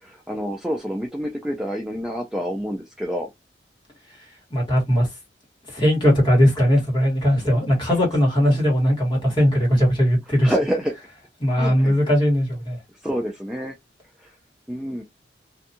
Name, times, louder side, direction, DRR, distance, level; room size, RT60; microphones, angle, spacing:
voice 1, 0.0-3.3 7.8-7.9 10.4-10.9 11.6-12.0 13.0-13.7 14.2-14.3 14.7-15.0, equal, 5° right, 0.4 m, -27 dB
voice 2, 4.5-5.1 5.7-10.5 11.4-12.8, equal, 25° left, 1.5 m, -19 dB
2.6 x 2.3 x 2.7 m
head